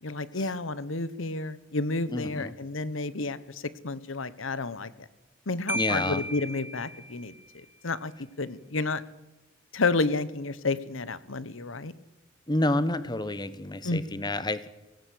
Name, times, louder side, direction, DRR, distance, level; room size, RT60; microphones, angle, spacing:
voice 1, 0.0-5.1 5.5-8.1 8.4-9.0 9.7-11.9 13.8-14.2, left 3 dB, 85° left, 16 dB, 1.1 m, -31 dB
voice 2, 2.1-2.5 5.7-6.2 12.5-14.7, left 1 dB, 20° left, 14 dB, 1.2 m, -29 dB
Marimba xylophone, 5.7-7.4, equal, 10° right, 0.9 m, -34 dB
19.5 x 17.0 x 8.5 m, 1.0 s
head